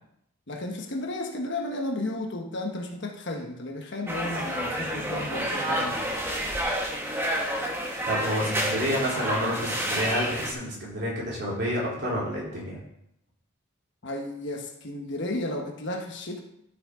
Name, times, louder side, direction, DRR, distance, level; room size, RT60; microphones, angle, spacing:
voice 1, 0.5-6.1 8.4-8.5 14.0-16.4, left 2 dB, 55° left, 2 dB, 1.2 m, -33 dB
sound 1, 4.1-10.5, equal, 10° right, 1.1 m, -29 dB
voice 2, 8.0-12.8, equal, 50° right, -4 dB, 3.5 m, -29 dB
12.5 x 6.1 x 3.8 m, 0.78 s
head